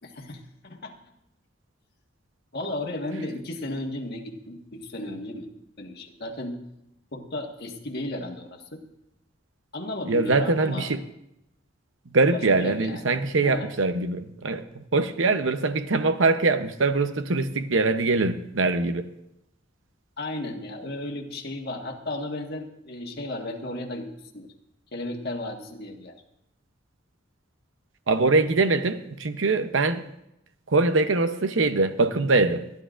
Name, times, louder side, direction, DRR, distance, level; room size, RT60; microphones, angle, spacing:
voice 1, 0.0-0.9 2.5-5.5 5.8-6.6 7.1-8.8 9.7-10.9 12.3-13.2 13.4-13.7 20.2-24.1 24.3-24.5 24.9-26.1, left 1 dB, 55° left, 1 dB, 1.5 m, -34 dB
voice 2, 10.1-11.0 12.1-19.0 28.1-30.0 30.7-32.6, right 3 dB, 80° right, 10 dB, 0.8 m, -23 dB
26.5 x 10.5 x 2.5 m, 0.83 s
head